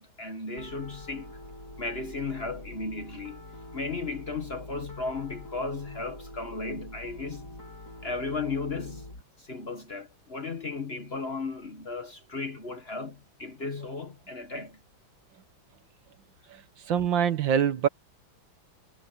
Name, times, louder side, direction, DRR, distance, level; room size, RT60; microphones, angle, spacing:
voice 1, 0.0-1.4 1.8-3.4 3.7-7.5 8.0-9.1 9.4-14.8, left 3 dB, 35° left, 1.4 m, -35 dB
Piano, 0.6-9.2, left 1 dB, 50° left, 4.7 m, -45 dB
voice 2, 16.9-17.9, right 8 dB, 70° right, 1.9 m, -24 dB
omnidirectional pair, 2.1 m